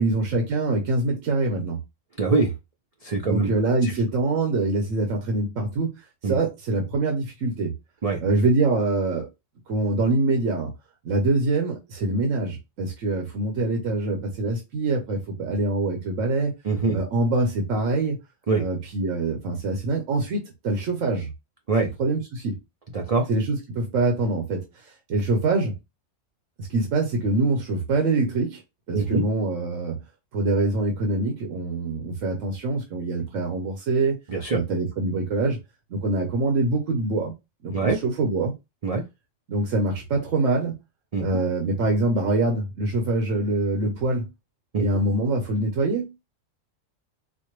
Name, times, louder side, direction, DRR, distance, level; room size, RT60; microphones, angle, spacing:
voice 1, 0.0-1.8 3.2-6.0 6.2-7.7 8.2-9.3 9.7-10.7 11.0-16.5 16.9-18.2 18.6-21.3 21.8-22.6 23.3-25.7 26.6-28.6 28.9-30.0 30.3-34.2 34.5-35.6 35.9-37.3 37.6-38.5 39.5-40.7 41.2-44.3 44.8-46.1, right 2 dB, 75° right, 1.2 m, -24 dB
voice 2, 2.2-2.5 3.0-3.5 3.8-3.9 6.2-6.4 8.0-8.2 16.6-17.0 18.5-18.6 21.7-21.9 22.9-23.3 28.9-29.3 34.3-34.6 37.7-38.0 38.8-39.0 41.1-41.3 44.7-44.8, right 3 dB, 50° right, 0.4 m, -23 dB
4.3 x 2.2 x 3.0 m
omnidirectional pair, 1.3 m